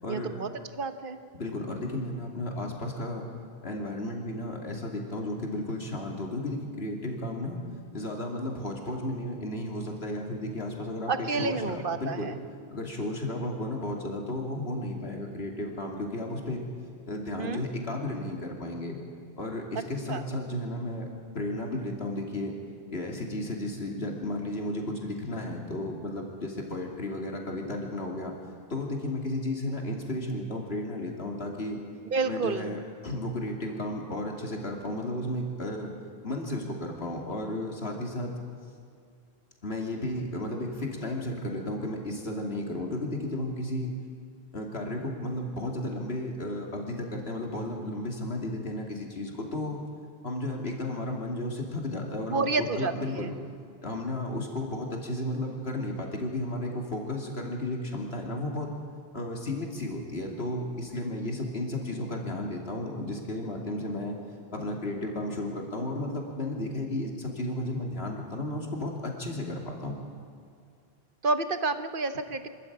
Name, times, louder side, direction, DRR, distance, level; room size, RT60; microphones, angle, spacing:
voice 1, 0.1-1.2 11.1-12.4 17.4-17.7 20.1-20.2 32.1-32.8 52.2-53.3 71.2-72.5, right 4 dB, 55° right, 10 dB, 1.3 m, -30 dB
voice 2, 1.3-3.3 3.6-7.6 7.9-12.3 12.7-16.6 17.1-19.0 19.4-21.1 21.3-22.5 22.9-28.3 28.7-31.8 32.3-35.9 36.2-38.3 39.6-43.9 44.5-49.8 50.2-53.3 53.8-58.7 59.1-64.2 64.5-70.0, left 1 dB, 75° left, 1 dB, 3.1 m, -33 dB
25.0 x 13.5 x 8.6 m, 2.3 s
omnidirectional pair, 1.1 m